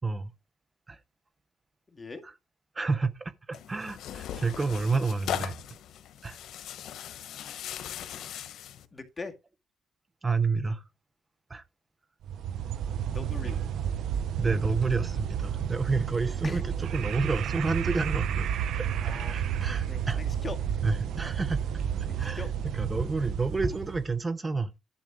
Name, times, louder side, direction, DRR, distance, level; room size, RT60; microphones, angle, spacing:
voice 1, 1.9-2.2 8.9-9.3 13.1-13.6 16.4-16.6 19.0-19.4 19.9-20.6 22.1-22.5, left 4 dB, 25° left, 1.9 m, -40 dB
voice 2, 2.7-5.6 6.2-6.4 10.2-10.8 11.5-11.6 14.4-18.5 18.8-20.2 20.8-21.7 22.2-22.4 22.7-24.7, right 4 dB, 25° right, 0.8 m, -29 dB
Tearing, 3.5-8.9, left 10 dB, 75° left, 1.2 m, -39 dB
sound 1, 12.2-24.2, right 9 dB, 75° right, 0.7 m, -31 dB
11.0 x 7.2 x 3.8 m
cardioid pair, 90°, 0 cm